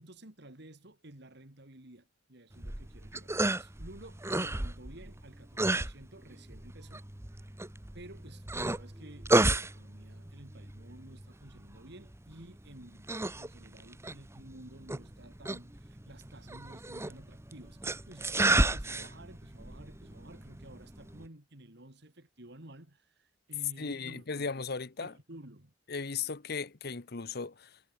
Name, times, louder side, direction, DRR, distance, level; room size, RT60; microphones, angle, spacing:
voice 1, 0.0-7.1 7.9-13.1 13.3-24.5 25.0-25.7, right 1 dB, 60° right, 3.3 m, -52 dB
sound 1, 2.5-21.3, right 2 dB, 15° right, 1.0 m, -33 dB
voice 2, 23.8-25.1 25.9-27.8, left 5 dB, 55° left, 1.1 m, -37 dB
head